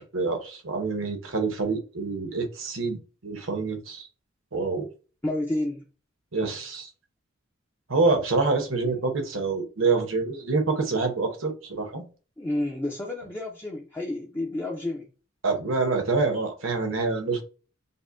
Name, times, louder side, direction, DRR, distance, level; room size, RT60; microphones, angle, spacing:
voice 1, 0.0-4.1 4.5-4.9 6.3-6.9 7.9-12.0 15.4-17.4, right 3 dB, 75° right, 0.9 m, -26 dB
voice 2, 5.2-5.8 8.8-8.9 12.4-15.1, left 1 dB, 10° left, 0.5 m, -30 dB
5.3 x 2.1 x 2.5 m
head